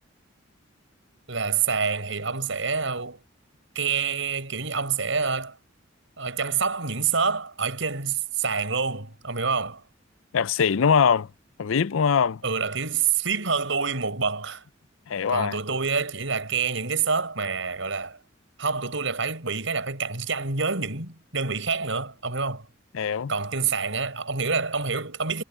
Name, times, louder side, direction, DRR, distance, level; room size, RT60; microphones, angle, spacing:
voice 1, 1.3-3.2 3.8-5.6 6.2-9.8 12.4-14.6 15.3-18.2 18.6-22.7 23.3-25.4, right 5 dB, 75° right, 5.2 m, -27 dB
voice 2, 10.3-11.3 11.6-12.4 15.1-15.6 22.9-23.3, left 6 dB, 85° left, 0.5 m, -22 dB
head